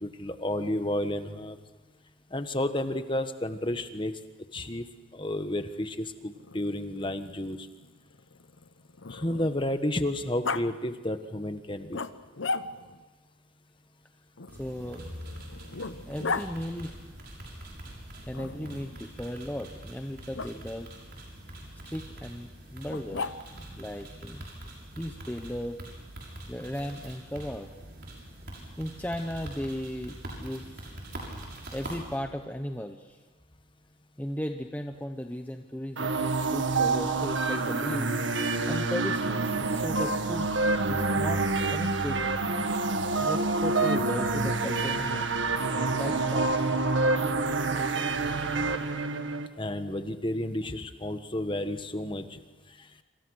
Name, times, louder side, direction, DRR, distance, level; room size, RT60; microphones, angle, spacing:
voice 1, 0.0-1.6 2.3-4.1 4.5-4.8 5.1-7.7 9.1-12.0 49.6-52.4 52.8-52.9, left 1 dB, 25° left, 9 dB, 1.4 m, -31 dB
Growling, 6.4-9.8 10.4-10.6 11.9-13.0 14.4-16.5 18.3-19.0 20.3-20.5 22.9-23.7, left 4 dB, 70° left, 0.9 m, -36 dB
sound 1, 14.5-32.2, right 1 dB, 55° right, 6.9 m, -44 dB
voice 2, 14.6-15.1 16.0-17.0 18.3-20.9 21.8-23.3 23.8-24.5 25.0-25.8 26.5-27.7 28.8-30.9 31.7-33.2 34.2-38.1 38.7-40.5 40.9-41.4 41.7-42.3 43.2-45.3 45.7-47.2, equal, 10° left, 4 dB, 1.0 m, -36 dB
sound 2, 36.0-49.5, right 3 dB, 70° right, 1.7 m, -27 dB
27.5 x 26.5 x 6.4 m, 1.2 s
head